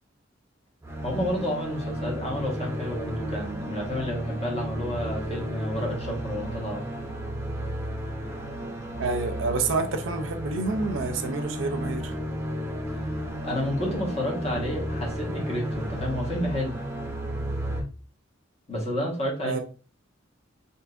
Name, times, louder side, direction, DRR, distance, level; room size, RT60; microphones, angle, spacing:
sound 1, 0.8-17.8, equal, 15° right, 0.6 m, -33 dB
voice 1, 1.0-6.8 12.9-13.0 13.4-16.7 18.7-19.5, equal, 30° left, 1.2 m, -30 dB
voice 2, 9.0-12.2 17.5-17.6 19.4-19.6, right 3 dB, 70° right, 0.5 m, -28 dB
3.6 x 2.7 x 2.4 m
head